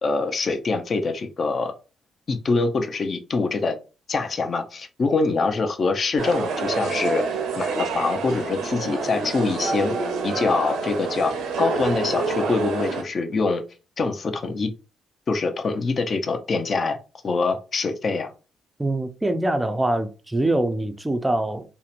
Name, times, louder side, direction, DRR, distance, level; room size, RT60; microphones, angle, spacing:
voice 1, 0.0-1.7 2.3-3.8 4.1-7.2 7.6-10.0 10.2-13.6 14.0-14.7 15.3-17.0 17.2-18.3, left 3 dB, 45° left, 0.5 m, -24 dB
sound 1, 6.2-13.0, right 4 dB, 90° right, 0.6 m, -27 dB
voice 2, 18.8-21.6, right 1 dB, 10° right, 0.4 m, -24 dB
2.8 x 2.1 x 2.5 m
cardioid pair, 90°, 0 cm